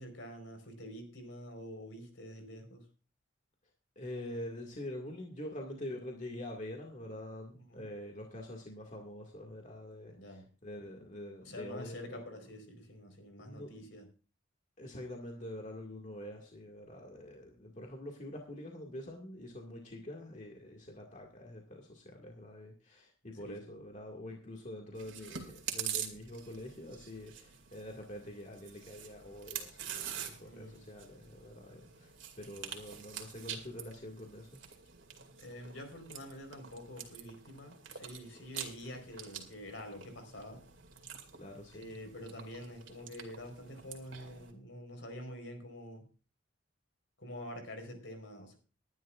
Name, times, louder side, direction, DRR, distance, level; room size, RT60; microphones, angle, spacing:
voice 1, 0.0-2.8 7.5-7.9 10.1-10.4 11.4-14.1 23.5-23.8 30.4-30.8 35.4-40.6 41.7-46.1 47.2-48.6, left 1 dB, 70° left, 5 dB, 4.3 m, -47 dB
voice 2, 4.0-12.2 13.4-13.9 14.8-34.5 41.4-41.9, left 1 dB, 40° left, 1 dB, 2.0 m, -45 dB
Chewing mastication, 25.0-44.5, right 9 dB, 70° right, 2.4 m, -46 dB
21.0 x 11.0 x 2.5 m, 0.34 s
head